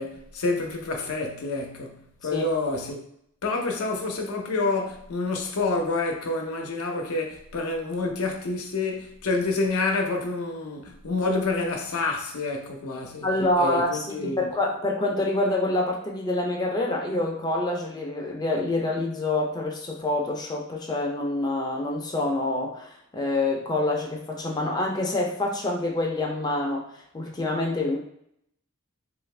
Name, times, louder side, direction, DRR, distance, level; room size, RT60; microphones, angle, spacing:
voice 1, 0.0-3.0 3.4-13.3 13.6-14.5, left 3 dB, 85° left, 0.6 m, -28 dB
voice 2, 13.2-26.9 27.1-28.0, left 2 dB, 20° left, 0.4 m, -26 dB
2.8 x 2.4 x 3.2 m
head